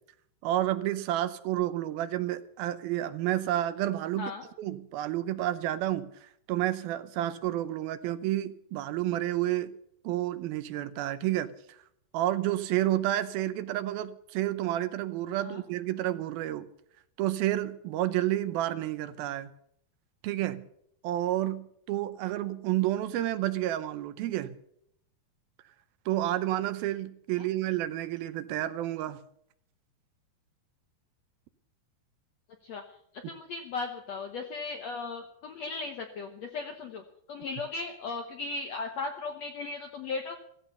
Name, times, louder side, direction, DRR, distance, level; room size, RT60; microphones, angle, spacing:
voice 1, 0.4-4.3 4.6-9.7 10.0-11.8 12.1-16.7 17.2-19.5 20.2-20.7 21.0-24.6 26.1-29.2, right 14 dB, 80° right, 12 dB, 2.5 m, -30 dB
voice 2, 33.3-37.0 37.3-40.4, left 4 dB, 70° left, 4 dB, 1.6 m, -36 dB
15.5 x 15.0 x 5.6 m, 0.71 s
omnidirectional pair, 4.5 m